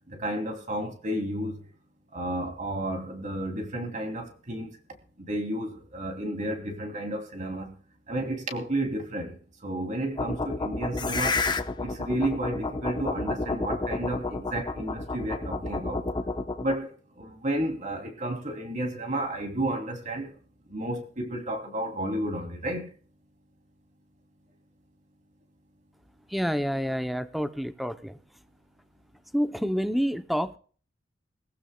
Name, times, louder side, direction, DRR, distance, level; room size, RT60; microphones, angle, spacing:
voice 1, 0.1-1.6 2.1-4.8 5.2-7.7 8.1-9.3 9.6-11.4 11.8-16.0 16.6-20.3 20.7-22.9, right 1 dB, 40° right, 2.8 m, -32 dB
sound 1, 10.2-16.8, left 3 dB, 25° left, 0.9 m, -30 dB
voice 2, 26.3-28.2 29.3-30.6, equal, ahead, 0.6 m, -28 dB
22.0 x 15.0 x 2.2 m
head